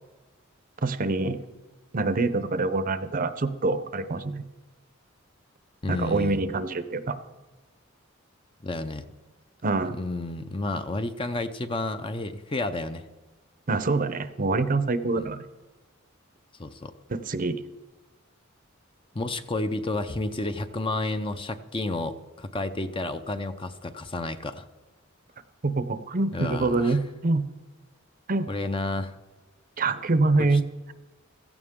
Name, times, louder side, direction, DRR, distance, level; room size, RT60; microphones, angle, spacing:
voice 1, 0.8-1.4 1.9-4.4 5.9-7.2 9.6-10.0 13.7-15.5 17.1-17.6 25.6-27.4 28.3-28.5 29.8-30.6, right 3 dB, 40° right, 12 dB, 0.7 m, -25 dB
voice 2, 5.8-6.4 8.6-9.1 9.8-13.1 15.1-15.3 16.6-16.9 19.1-24.7 26.3-27.0 28.5-29.2 30.4-30.5, left 2 dB, 25° left, 9 dB, 0.6 m, -31 dB
16.0 x 14.5 x 3.7 m, 1.2 s
head